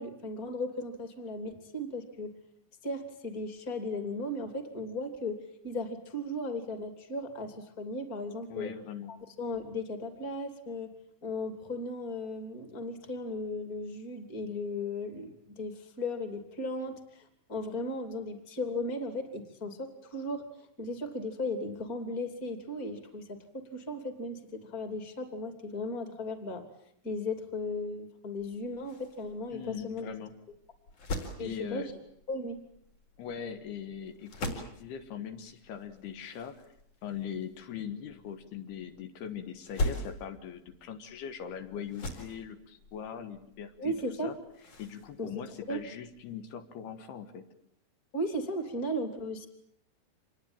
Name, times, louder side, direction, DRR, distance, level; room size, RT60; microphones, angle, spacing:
voice 1, 0.0-2.3 2.8-8.7 9.1-10.9 11.2-26.6 27.0-30.1 31.4-31.9 32.3-32.6 43.8-44.3 45.2-45.3 45.7-45.8 48.1-49.5, left 1 dB, 25° left, 8 dB, 2.8 m, -36 dB
voice 2, 8.5-9.2 29.5-30.4 31.4-31.9 33.2-36.7 37.0-43.9 44.2-44.4 44.8-47.5, left 8 dB, 75° left, 8 dB, 3.4 m, -41 dB
sound 1, 28.4-46.3, left 2 dB, 45° left, 5.4 m, -42 dB
27.0 x 22.0 x 9.0 m, 0.68 s
omnidirectional pair, 4.8 m